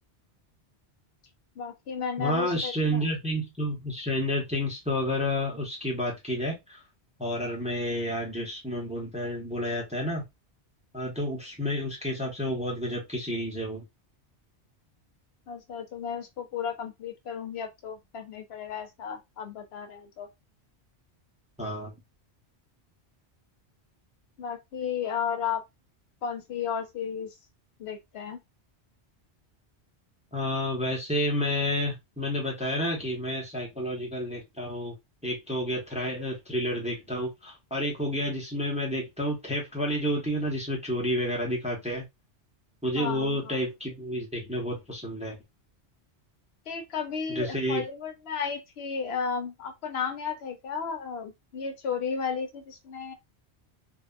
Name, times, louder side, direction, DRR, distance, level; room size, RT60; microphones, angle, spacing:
voice 1, 1.6-3.0 15.5-20.3 24.4-25.6 26.2-27.3 27.8-28.4 43.0-43.6 46.7-53.1, left 6 dB, 70° left, 0.8 m, -34 dB
voice 2, 2.2-6.8 7.2-10.2 10.9-13.8 21.6-21.9 30.3-34.9 35.2-42.0 42.8-45.4 47.3-47.8, equal, 5° right, 0.7 m, -30 dB
2.6 x 2.3 x 2.2 m
omnidirectional pair, 1.1 m